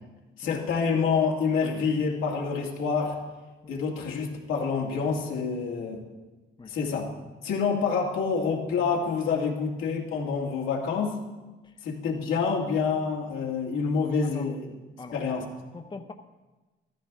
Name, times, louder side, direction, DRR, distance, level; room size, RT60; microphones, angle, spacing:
voice 1, 0.4-3.2 3.7-6.0 6.7-7.1 7.4-11.2 11.8-14.7 15.1-15.4, left 5 dB, 90° left, -2 dB, 2.2 m, -27 dB
voice 2, 15.0-16.1, left 3 dB, 25° left, 5 dB, 0.9 m, -43 dB
14.0 x 13.5 x 3.7 m, 1.2 s
cardioid pair, 90°, 20 cm